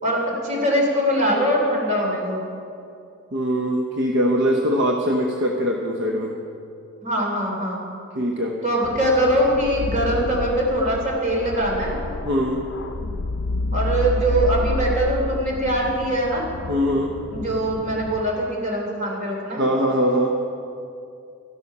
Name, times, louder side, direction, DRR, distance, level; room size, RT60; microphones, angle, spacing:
voice 1, 0.0-2.4 7.0-7.8 8.6-12.0 13.7-16.5 17.3-19.6, right 1 dB, 35° right, -1 dB, 3.1 m, -22 dB
voice 2, 3.3-6.3 8.1-8.6 12.2-12.7 16.7-17.2 19.6-20.4, equal, 60° right, 1 dB, 0.9 m, -22 dB
sound 1, 8.8-18.2, left 2 dB, 60° left, 0.5 m, -29 dB
13.0 x 12.0 x 5.5 m, 2.5 s
head